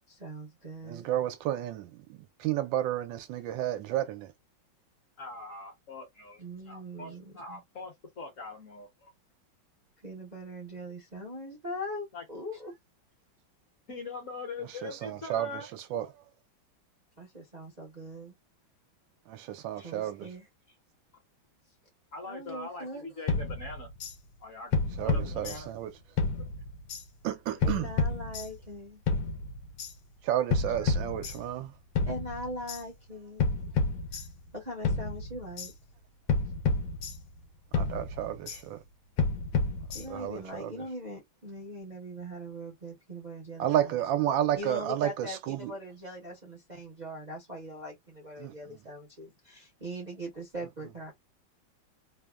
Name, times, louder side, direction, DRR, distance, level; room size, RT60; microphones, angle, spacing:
voice 1, 0.0-1.1 6.4-7.6 10.0-12.7 17.2-18.3 19.8-20.7 22.3-23.1 27.6-29.0 32.1-33.7 34.1-34.2 34.5-35.7 39.9-44.0 44.5-51.1, equal, 40° right, 0.6 m, -41 dB
voice 2, 0.9-4.3 14.8-15.5 15.9-16.1 19.3-20.3 25.0-25.9 27.2-27.9 30.2-31.7 37.7-38.8 40.1-40.7 43.6-45.7 48.4-48.5, right 12 dB, 80° right, 1.3 m, -31 dB
voice 3, 5.2-6.4 6.7-7.1 7.4-9.1 12.1-12.2 13.9-15.7 22.1-23.9 24.4-25.7 26.4-26.5 27.5-27.6 30.8-30.9 31.2-31.4, left 3 dB, 50° left, 1.1 m, -42 dB
sound 1, 23.3-24.1 24.7-25.9 26.2-27.0 27.6-28.7 29.1-29.9 30.5-31.7 32.0-32.8 33.4-34.6 34.8-35.7 36.3-37.5 37.7-38.6 39.2-40.3, left 3 dB, 75° left, 1.4 m, -30 dB
3.4 x 2.1 x 2.3 m
omnidirectional pair, 2.1 m